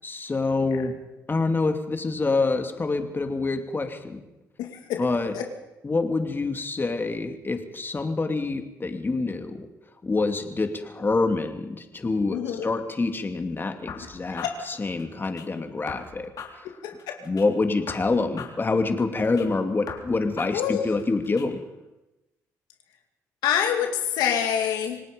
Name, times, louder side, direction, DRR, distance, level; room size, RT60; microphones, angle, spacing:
voice 1, 0.0-1.0 1.3-4.2 5.0-5.3 5.8-9.7 10.0-16.3 17.3-21.6, left 3 dB, 30° left, 6 dB, 2.6 m, -26 dB
voice 2, 4.6-5.0 5.3-5.5 12.3-12.7 14.3-14.6 16.8-17.2 20.5-20.8 23.4-25.0, left 9 dB, 85° left, 4 dB, 2.2 m, -26 dB
sound 1, 13.9-15.5 15.9-17.5 17.9-19.5 19.9-21.5, left 6 dB, 65° left, 3.5 m, -41 dB
26.5 x 18.5 x 5.3 m, 0.98 s
supercardioid pair, 60°, 7 cm